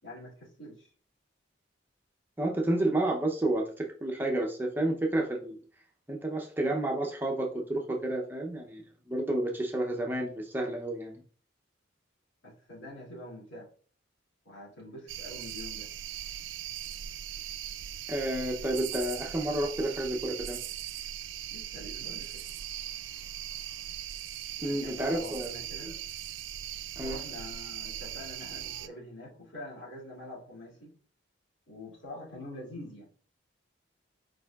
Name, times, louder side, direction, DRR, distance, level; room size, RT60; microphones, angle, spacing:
voice 1, 0.0-0.9 12.4-13.7 14.4-15.9 21.5-22.4 24.6-25.9 27.0-31.0 31.7-33.1, left 1 dB, 75° left, -4 dB, 2.4 m, -45 dB
voice 2, 2.4-5.6 6.1-8.8 9.1-11.2 18.1-20.6 24.6-25.5 25.8-25.9 27.0-27.2, right 1 dB, 10° right, 1 dB, 0.6 m, -30 dB
sound 1, 15.1-28.9, right 11 dB, 80° right, 0.4 m, -39 dB
4.7 x 4.6 x 2.3 m, 0.41 s
head